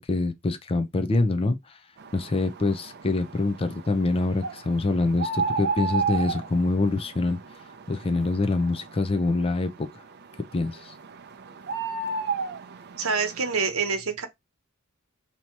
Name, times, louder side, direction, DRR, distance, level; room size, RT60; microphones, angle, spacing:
voice 1, 0.1-1.8 2.1-7.4 7.9-9.9 10.5-10.9, left 2 dB, 25° left, 0.4 m, -25 dB
sound 1, 2.0-13.7, right 4 dB, 50° right, 0.5 m, -34 dB
voice 2, 13.0-14.3, right 5 dB, 80° right, 1.0 m, -26 dB
2.9 x 2.8 x 4.4 m
head